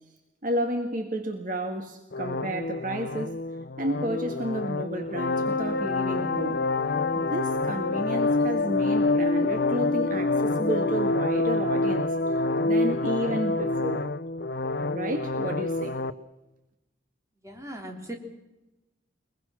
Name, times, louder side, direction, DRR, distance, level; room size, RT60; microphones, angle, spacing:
voice 1, 0.4-3.3 3.8-6.6 7.1-14.1 14.9-16.0, right 1 dB, 45° right, 5 dB, 1.6 m, -31 dB
sound 1, 2.1-16.1, left 2 dB, 55° left, 0.7 m, -27 dB
voice 2, 17.4-18.2, right 1 dB, 15° right, 2 dB, 3.0 m, -38 dB
22.5 x 21.5 x 6.2 m, 1.0 s
head